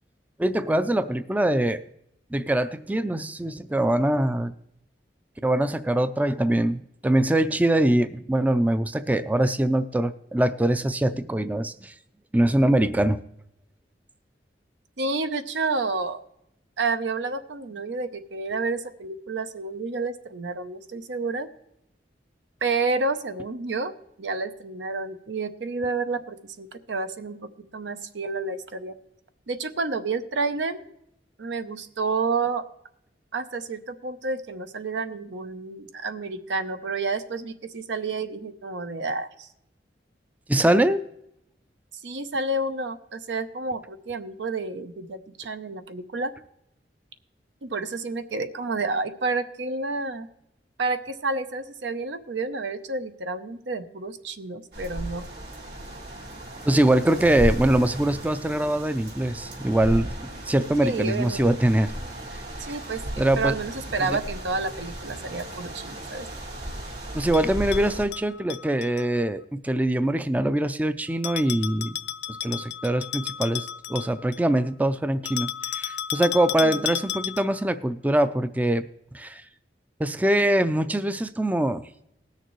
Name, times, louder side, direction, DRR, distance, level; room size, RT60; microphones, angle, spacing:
voice 1, 0.4-1.8 2.3-4.5 5.4-11.9 12.3-13.2 40.5-41.0 56.7-61.9 62.3-62.4 63.2-63.5 64.0-64.2 67.1-71.9 72.4-78.9 79.1-79.5 80.0-81.9, right 1 dB, 10° right, 12 dB, 0.3 m, -23 dB
voice 2, 15.0-16.2 16.8-21.5 22.6-23.9 24.2-28.9 29.5-30.8 31.4-32.6 33.3-39.5 42.0-46.3 47.6-50.3 50.8-55.2 60.8-61.4 62.6-66.3 76.6-76.9, right 3 dB, 90° right, 10 dB, 0.7 m, -30 dB
sound 1, 54.7-68.0, equal, 65° right, 3.6 m, -35 dB
Bell, 67.3-69.1 71.2-74.5 75.3-77.7, left 11 dB, 70° left, 0.4 m, -33 dB
19.5 x 6.7 x 3.1 m, 0.80 s
head